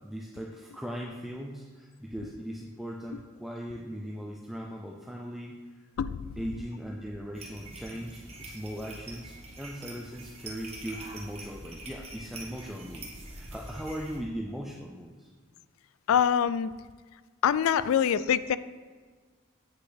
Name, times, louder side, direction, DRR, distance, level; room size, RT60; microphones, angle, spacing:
voice 1, 0.0-5.8 6.4-15.3, equal, ahead, -2 dB, 0.4 m, -39 dB
sound 1, 7.3-14.2, right 2 dB, 30° right, 1.2 m, -44 dB
voice 2, 16.1-16.7 17.4-18.6, left 8 dB, 70° left, 15 dB, 0.3 m, -24 dB
8.2 x 5.5 x 4.0 m, 1.5 s
head